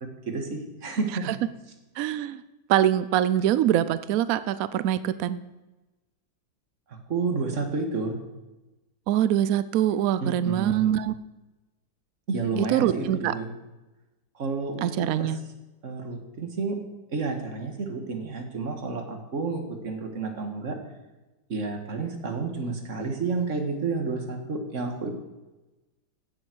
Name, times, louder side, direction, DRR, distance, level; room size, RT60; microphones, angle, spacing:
voice 1, 0.0-1.4 6.9-8.2 10.2-10.9 12.3-13.5 14.4-15.3 15.8-16.8 17.1-20.8 21.5-25.1, right 4 dB, 40° right, 4 dB, 1.9 m, -30 dB
voice 2, 2.0-2.4 2.7-5.4 9.1-11.1 12.6-13.3 14.8-15.4, right 11 dB, 90° right, 14 dB, 0.7 m, -24 dB
15.5 x 8.0 x 6.2 m, 1.1 s
omnidirectional pair, 2.1 m